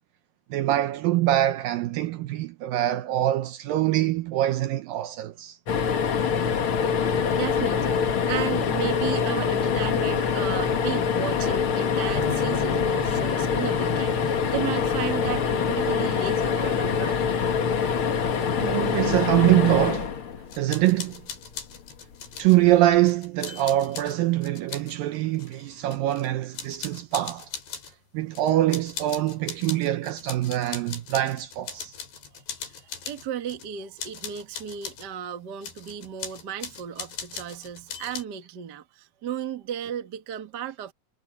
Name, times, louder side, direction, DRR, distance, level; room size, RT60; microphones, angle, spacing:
voice 1, 0.5-5.6 18.6-20.2 20.6-21.2 22.4-27.5 28.1-31.9, right 14 dB, 75° right, 2.2 m, -24 dB
sound 1, 5.7-20.9 22.6-22.8 23.1-23.2, left 6 dB, 55° left, 1.5 m, -25 dB
voice 2, 6.5-17.4 32.3-40.9, right 9 dB, 45° right, 1.3 m, -34 dB
Bass guitar, 12.1-15.8, left 1 dB, 35° left, 4.0 m, -38 dB
sound 2, 20.5-22.6 23.1-25.0 25.4-26.3 26.6-27.9 28.3-33.7 34.0-35.1 35.6-38.2, left 6 dB, 85° left, 6.6 m, -39 dB
omnidirectional pair, 4.6 m